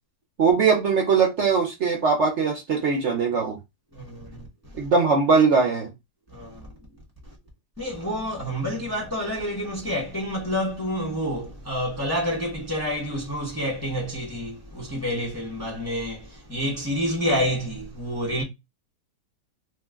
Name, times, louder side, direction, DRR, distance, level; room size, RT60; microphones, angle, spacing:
voice 1, 0.4-3.6 4.8-5.9, right 5 dB, 55° right, 0.8 m, -21 dB
voice 2, 3.9-4.4 6.3-6.7 7.8-18.4, equal, 15° left, 0.6 m, -28 dB
3.0 x 2.1 x 3.4 m
omnidirectional pair, 1.7 m